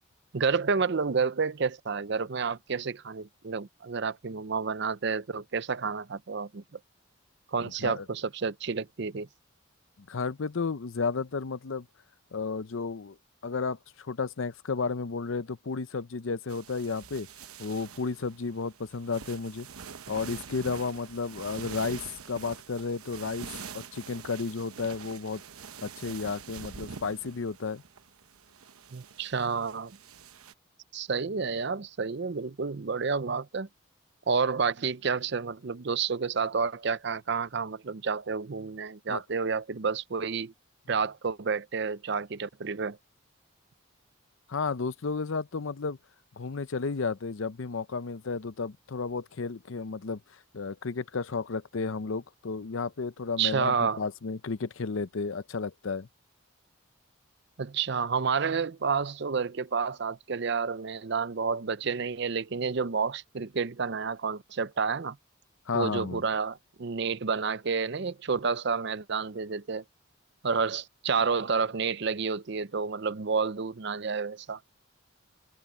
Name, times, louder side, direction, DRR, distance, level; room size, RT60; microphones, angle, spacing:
voice 1, 0.3-6.8 7.5-9.3 28.9-30.0 30.9-33.7 34.3-40.5 40.9-43.0 53.4-54.0 57.6-65.2 65.7-69.8 70.4-74.6, right 5 dB, 55° right, 0.6 m, -30 dB
voice 2, 7.6-8.1 10.1-11.9 12.3-13.2 13.4-17.3 17.6-19.7 20.1-23.5 23.7-25.4 25.8-27.8 39.1-39.2 44.5-46.0 46.4-56.1 65.7-66.2, left 4 dB, 65° left, 0.6 m, -33 dB
sound 1, 16.5-30.5, right 6 dB, 90° right, 1.0 m, -45 dB
head